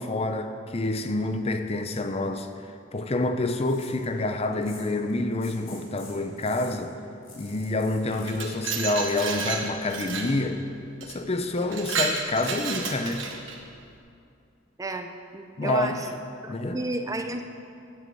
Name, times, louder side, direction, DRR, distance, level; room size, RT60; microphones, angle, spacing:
voice 1, 0.0-2.5 2.9-7.0 7.4-10.7 11.0-13.3 15.6-16.1 16.5-16.8, left 2 dB, 30° left, 7 dB, 0.6 m, -27 dB
sound 1, 3.6-9.1, left 2 dB, 85° left, 3.1 m, -50 dB
Glass, 8.1-10.4 11.0-11.2 11.6-13.6, right 5 dB, 70° right, 1.2 m, -31 dB
voice 2, 14.8-16.1 16.4-17.4, right 2 dB, 15° right, 6 dB, 0.5 m, -32 dB
9.6 x 7.6 x 7.7 m, 2.5 s
head